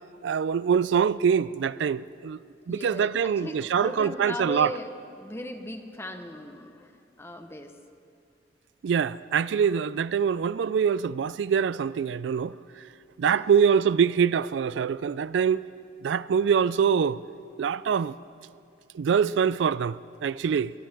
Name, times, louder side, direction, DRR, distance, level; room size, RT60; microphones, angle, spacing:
voice 1, 0.2-2.4 2.7-4.7 8.8-12.6 13.2-15.6 16.0-17.2 17.6-18.1 18.9-20.7, right 7 dB, 80° right, 0.3 m, -24 dB
voice 2, 2.7-4.9 5.2-6.9 7.2-7.8 9.7-9.8 12.4-12.6 13.3-13.5, equal, 15° left, 0.9 m, -38 dB
22.0 x 18.5 x 3.5 m
head